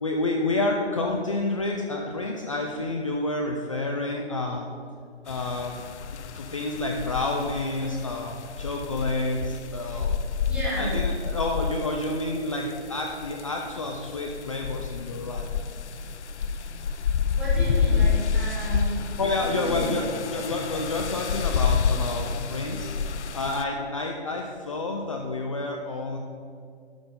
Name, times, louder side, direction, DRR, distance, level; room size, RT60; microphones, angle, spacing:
voice 1, 0.0-4.7 5.2-5.7 6.1-10.2 10.8-15.5 19.2-22.9 23.3-26.2, left 2 dB, 30° left, 1 dB, 0.5 m, -29 dB
sound 1, 5.3-23.6, left 6 dB, 85° left, 0.5 m, -29 dB
voice 2, 10.5-10.9 17.4-19.0 19.3-19.9, right 2 dB, 5° right, -10 dB, 2.1 m, -33 dB
11.5 x 4.1 x 5.2 m, 2.2 s
hypercardioid pair, 150°, 34 cm